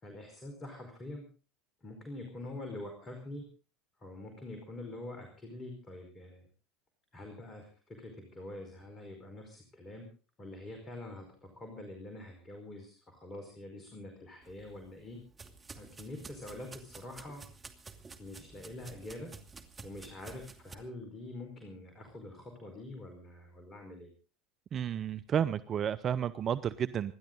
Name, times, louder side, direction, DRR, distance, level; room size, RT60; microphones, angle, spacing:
voice 1, 0.0-1.3 1.8-3.5 4.0-6.5 7.1-10.0 10.4-15.2 15.8-17.4 18.2-19.3 19.8-24.1, left 1 dB, 25° left, 4 dB, 4.8 m, -45 dB
sound 1, 14.4-20.8, right 4 dB, 20° right, 2.6 m, -51 dB
voice 2, 24.7-27.1, right 9 dB, 40° right, 13 dB, 0.7 m, -31 dB
26.5 x 12.0 x 3.9 m, 0.37 s
hypercardioid pair, 80°, 0 cm